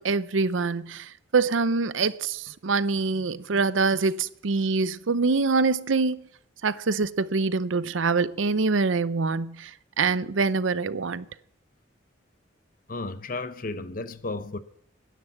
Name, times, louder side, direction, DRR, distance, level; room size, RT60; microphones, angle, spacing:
voice 1, 0.0-6.2 6.6-9.7 10.0-11.2, right 4 dB, 90° right, 0.7 m, -25 dB
voice 2, 12.9-14.6, left 3 dB, 45° left, 0.7 m, -33 dB
11.5 x 10.5 x 8.6 m
head